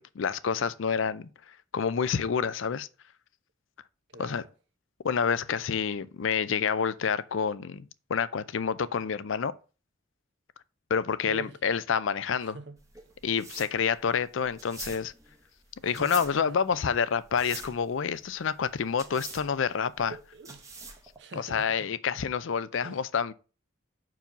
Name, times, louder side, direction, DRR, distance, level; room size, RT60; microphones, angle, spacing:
voice 1, 0.0-2.9 4.2-4.4 5.0-9.5 10.9-12.6 13.2-15.1 15.8-20.1 21.4-23.3, left 6 dB, 75° left, 0.5 m, -28 dB
voice 2, 4.1-4.5 11.2-11.6 12.4-12.8 13.0-13.1 15.8-16.6 20.1-21.9 22.8-23.1, right 3 dB, 60° right, 0.9 m, -45 dB
sound 1, 12.8-21.2, right 4 dB, 15° right, 1.0 m, -45 dB
5.3 x 4.7 x 5.9 m
head